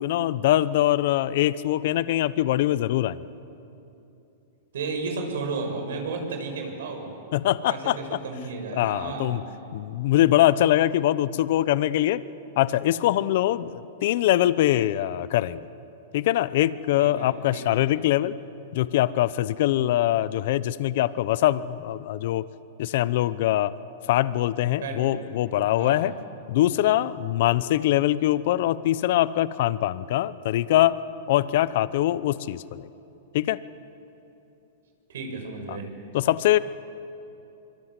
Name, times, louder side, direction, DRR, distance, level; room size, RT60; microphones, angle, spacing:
voice 1, 0.0-3.2 7.3-8.0 8.7-9.4 9.7-12.2 12.6-15.6 16.1-18.3 18.7-22.4 22.8-23.7 24.1-26.1 26.5-31.0 31.3-32.9 33.3-33.6 35.7-35.8 36.1-36.6, left 14 dB, 60° left, 16 dB, 0.8 m, -23 dB
voice 2, 4.7-7.1 7.7-9.4 17.0-17.8 24.8-25.2 25.7-26.1 35.1-35.9, right 4 dB, 80° right, 3 dB, 6.5 m, -33 dB
25.0 x 24.0 x 8.2 m, 2.9 s
hypercardioid pair, 145°, 0 cm